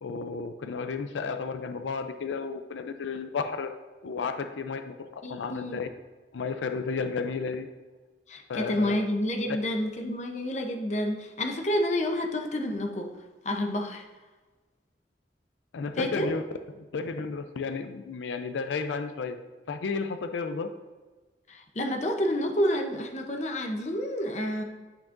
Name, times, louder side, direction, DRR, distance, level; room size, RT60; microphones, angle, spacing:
voice 1, 0.0-3.7 4.0-5.9 6.3-7.7 8.5-9.0 9.5-9.6 15.7-16.4 16.7-19.4 19.7-20.7, left 4 dB, 90° left, 8 dB, 0.4 m, -32 dB
voice 2, 5.2-5.8 8.3-13.1 13.4-14.1 16.0-16.3 21.5-24.6, left 1 dB, 40° left, 4 dB, 0.7 m, -29 dB
8.7 x 6.0 x 2.5 m, 1.3 s
head